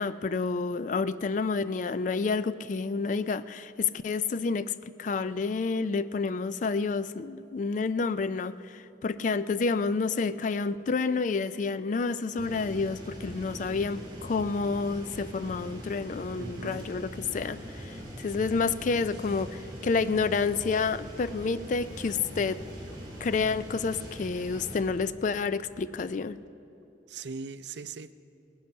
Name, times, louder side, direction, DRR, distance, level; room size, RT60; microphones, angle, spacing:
voice 1, 0.0-22.6 23.2-26.4, left 4 dB, 45° left, 15 dB, 0.3 m, -29 dB
sound 1, 12.4-24.8, equal, 25° right, 3.8 m, -42 dB
sound 2, 16.4-26.0, equal, 5° right, 3.1 m, -55 dB
voice 2, 16.4-16.8 27.1-28.1, right 5 dB, 65° right, 13 dB, 0.5 m, -40 dB
19.0 x 11.0 x 5.4 m, 2.9 s
head